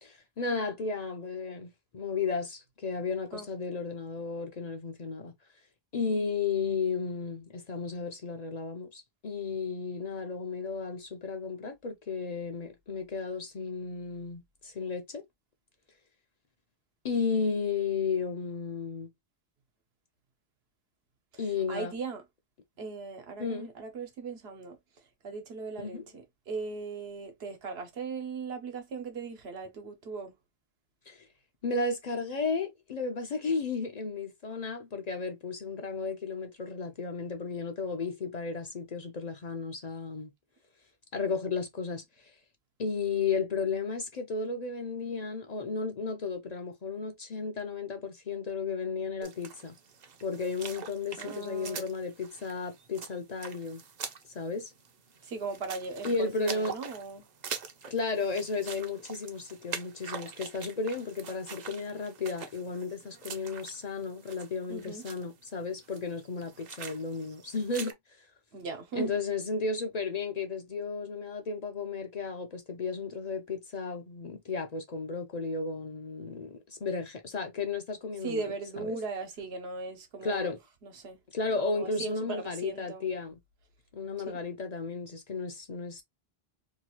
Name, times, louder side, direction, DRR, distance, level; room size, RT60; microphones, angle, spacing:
voice 1, 0.0-5.3 5.9-15.2 17.0-19.1 21.4-21.9 23.4-23.7 25.8-26.1 31.1-31.3 31.6-40.3 41.1-42.3 42.8-49.8 50.2-53.8 54.3-54.7 56.0-56.7 57.9-68.3 68.9-78.4 78.8-79.0 80.2-80.6 81.3-83.3 83.9-86.0, left 4 dB, 50° left, 0.6 m, -34 dB
voice 2, 21.3-22.2 22.8-24.8 25.2-30.3 51.2-51.9 55.2-57.3 64.7-65.0 68.5-69.1 78.2-80.6 80.8-81.2 81.6-83.1 84.3-84.4, right 4 dB, 85° right, 1.1 m, -38 dB
sound 1, 49.2-67.9, right 6 dB, 55° right, 0.6 m, -44 dB
2.8 x 2.3 x 2.8 m
omnidirectional pair, 1.0 m